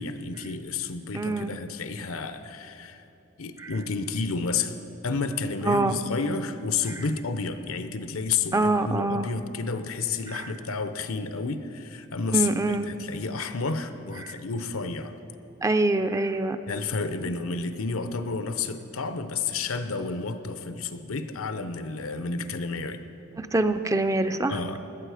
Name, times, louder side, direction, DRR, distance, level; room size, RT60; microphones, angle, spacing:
voice 1, 0.0-3.0 3.4-4.8 5.0-15.1 16.7-23.0 24.5-24.8, left 4 dB, 80° left, 10 dB, 0.8 m, -31 dB
voice 2, 1.1-1.5 3.6-3.7 5.7-6.0 8.5-9.3 12.3-12.9 14.2-14.4 15.6-16.6 23.4-24.6, right 2 dB, 15° right, 9 dB, 0.4 m, -24 dB
17.0 x 12.0 x 4.9 m, 2.8 s
head